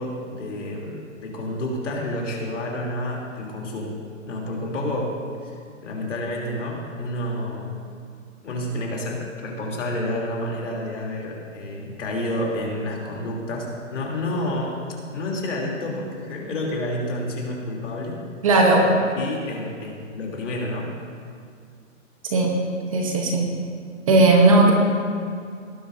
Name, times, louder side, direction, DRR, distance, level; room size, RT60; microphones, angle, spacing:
voice 1, 0.0-4.0 4.3-5.6 5.8-7.8 8.4-14.8 15.1-18.2 19.2-20.9, left 1 dB, 60° left, -2 dB, 3.3 m, -29 dB
voice 2, 18.4-18.9 22.2-22.5 22.9-23.5 24.1-24.7, right 2 dB, 25° right, 1 dB, 1.0 m, -16 dB
19.0 x 10.5 x 2.7 m, 2.3 s
hypercardioid pair, 170°, 40 cm